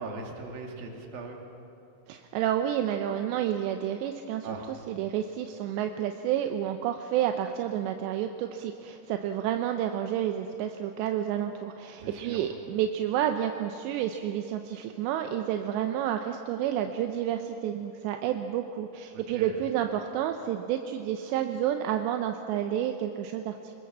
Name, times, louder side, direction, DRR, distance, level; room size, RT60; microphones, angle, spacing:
voice 1, 0.0-1.4 4.4-4.7 12.0-12.5 19.1-19.6, right 3 dB, 60° right, 1 dB, 3.9 m, -40 dB
voice 2, 2.1-23.7, right 10 dB, 85° right, 6 dB, 3.0 m, -30 dB
25.5 x 20.0 x 7.4 m, 2.8 s
omnidirectional pair, 5.0 m